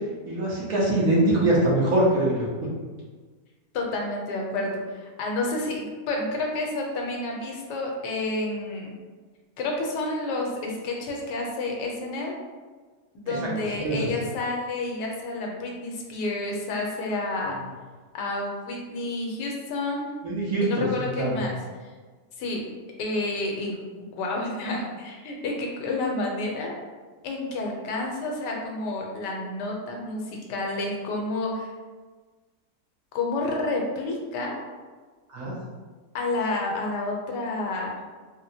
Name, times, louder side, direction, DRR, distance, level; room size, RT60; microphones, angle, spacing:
voice 1, 0.3-2.5 13.3-13.4 13.7-14.1 20.2-20.9 21.2-21.4 35.3-35.5, right 1 dB, 65° right, -5 dB, 1.1 m, -23 dB
voice 2, 3.7-8.9 9.6-12.3 13.1-17.5 18.1-20.1 20.6-21.6 22.4-22.6 23.0-26.7 27.2-31.7 33.1-34.6 36.1-37.9, left 2 dB, 85° left, 0 dB, 1.3 m, -30 dB
3.9 x 2.1 x 2.7 m, 1.4 s
omnidirectional pair, 1.8 m